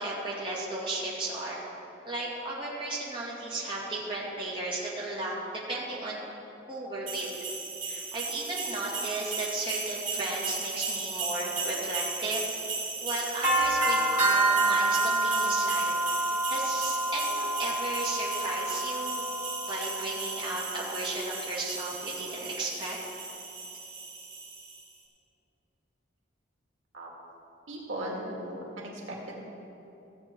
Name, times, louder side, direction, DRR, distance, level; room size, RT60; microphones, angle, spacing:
voice 1, 0.0-1.6 2.1-6.2 6.7-7.3 7.8-12.5 13.0-19.3 19.7-23.0, right 2 dB, 25° right, -6 dB, 2.4 m, -35 dB
sound 1, 7.1-24.8, right 2 dB, 40° right, 2.8 m, -30 dB
voice 2, 27.7-29.4, right 1 dB, 85° right, -3 dB, 2.1 m, -37 dB
16.0 x 8.5 x 4.6 m, 3.0 s
head